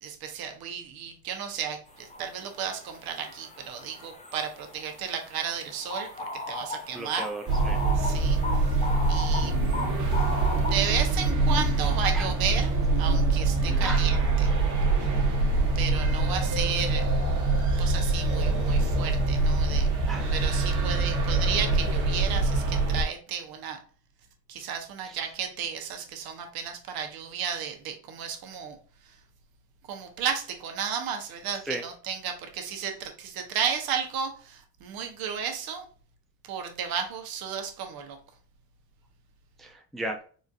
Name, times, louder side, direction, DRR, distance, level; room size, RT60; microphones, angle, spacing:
voice 1, 0.0-6.1 6.5-7.3 8.0-8.8 9.1-9.5 10.6-14.5 15.7-17.1 17.8-19.9 20.3-23.8 24.5-28.8 29.9-35.8 36.5-38.2, right 7 dB, 65° right, 4 dB, 0.9 m, -33 dB
sound 1, 2.0-2.2 2.5-10.9, left 2 dB, 15° left, 0.9 m, -37 dB
voice 2, 6.9-7.8 12.1-12.3 13.7-14.0 20.1-20.4 25.0-25.2 31.6-31.8 39.6-40.2, right 1 dB, ahead, 3 dB, 0.5 m, -35 dB
sound 2, 7.5-23.0, right 3 dB, 45° right, 1.3 m, -24 dB
4.2 x 2.5 x 2.4 m, 0.42 s
supercardioid pair, 90°, 39 cm